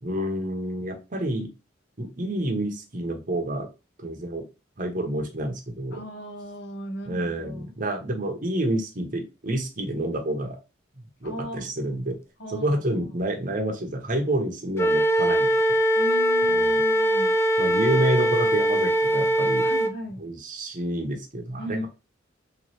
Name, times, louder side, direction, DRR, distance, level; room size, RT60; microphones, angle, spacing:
voice 1, 0.0-1.5 2.0-3.7 4.0-4.4 4.8-6.0 7.1-10.6 11.2-12.2 12.5-15.5 16.5-16.8 17.6-19.7 20.2-21.9, right 1 dB, 40° right, 3 dB, 1.0 m, -28 dB
voice 2, 5.9-7.7 11.2-11.7 12.4-12.8 15.9-17.4 19.6-20.2 21.6-21.9, equal, 55° left, 3 dB, 1.1 m, -36 dB
Wind instrument woodwind instrument, 14.8-19.9, right 1 dB, 15° left, 0.4 m, -21 dB
3.3 x 3.1 x 3.1 m, 0.28 s
head